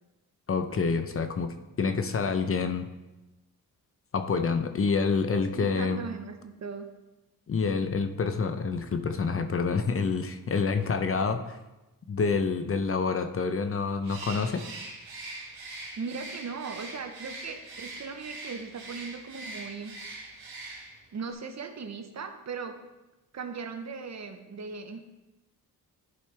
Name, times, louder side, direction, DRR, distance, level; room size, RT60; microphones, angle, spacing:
voice 1, 0.5-2.9 4.1-6.0 7.5-11.6 12.1-14.6, left 5 dB, 40° left, 8 dB, 0.7 m, -27 dB
voice 2, 5.3-6.9 16.0-20.0 21.1-22.8 23.3-25.0, right 5 dB, 50° right, 7 dB, 0.9 m, -38 dB
Bird, 14.0-21.1, right 2 dB, 90° right, 1.9 m, -42 dB
11.0 x 5.1 x 3.3 m, 1.0 s
cardioid pair, 75°, 36 cm